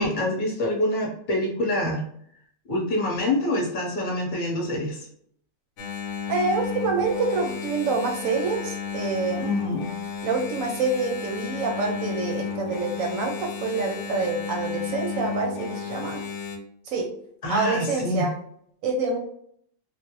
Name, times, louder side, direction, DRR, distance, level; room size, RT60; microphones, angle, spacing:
voice 1, 0.0-2.0 2.7-5.1 9.4-9.9 17.4-18.3, left 1 dB, 35° left, -2 dB, 0.9 m, -26 dB
Engine, 5.8-16.6, left 7 dB, 90° left, 1.2 m, -33 dB
voice 2, 6.3-9.5 10.2-16.2 16.9-17.1 17.5-18.3 18.8-19.2, right 4 dB, 70° right, 2 dB, 0.8 m, -26 dB
3.2 x 2.1 x 2.9 m, 0.67 s
omnidirectional pair, 1.7 m